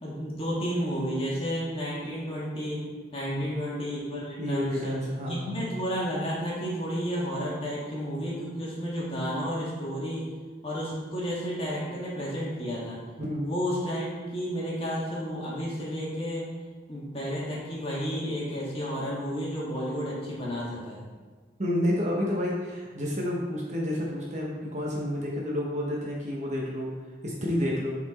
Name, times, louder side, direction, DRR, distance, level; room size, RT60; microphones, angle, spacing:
voice 1, 0.0-2.9 3.1-4.9 5.3-10.3 10.6-13.0 13.4-16.5 16.9-21.0, equal, 30° left, -6 dB, 1.7 m, -32 dB
voice 2, 4.4-5.7 13.2-13.5 21.6-26.9 27.2-28.0, left 1 dB, 40° right, -3 dB, 1.0 m, -30 dB
7.6 x 4.3 x 4.2 m, 1.4 s
head